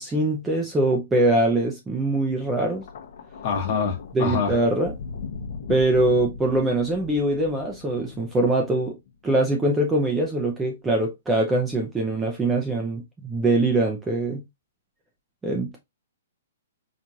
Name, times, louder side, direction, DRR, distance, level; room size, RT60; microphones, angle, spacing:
voice 1, 0.0-2.8 4.1-4.9 5.7-9.0 9.2-14.4 15.4-15.8, right 2 dB, 5° right, 0.5 m, -23 dB
Thunder, 2.8-9.1 10.1-10.4, left 5 dB, 50° left, 0.8 m, -38 dB
voice 2, 3.4-4.6, left 6 dB, 30° left, 1.2 m, -25 dB
4.4 x 2.4 x 2.7 m
hypercardioid pair, 170°, 0 cm